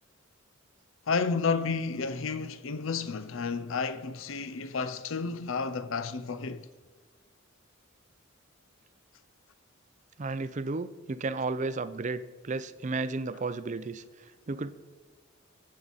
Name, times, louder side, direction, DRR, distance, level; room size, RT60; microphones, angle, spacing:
voice 1, 1.1-6.7, left 4 dB, 70° left, 0.6 m, -31 dB
voice 2, 10.2-14.8, right 3 dB, 35° right, 0.5 m, -33 dB
19.0 x 7.6 x 4.1 m
head